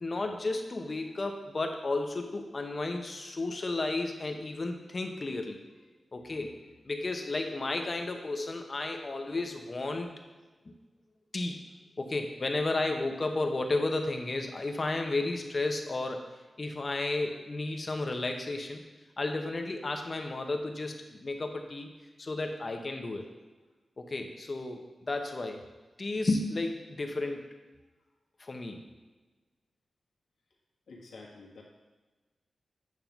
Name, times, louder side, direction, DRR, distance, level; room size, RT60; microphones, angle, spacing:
voice 1, 0.0-5.6 6.1-6.6 6.8-10.1 10.7-10.8 11.3-11.6 12.0-16.3 16.6-18.8 19.2-21.9 22.2-23.3 24.0-25.6 26.0-27.5 28.4-28.8, left 2 dB, 35° left, 4 dB, 0.9 m, -33 dB
voice 2, 30.9-31.6, left 3 dB, 90° left, -1 dB, 1.6 m, -49 dB
9.2 x 3.7 x 5.9 m, 1.2 s
wide cardioid pair, 110°, 0 cm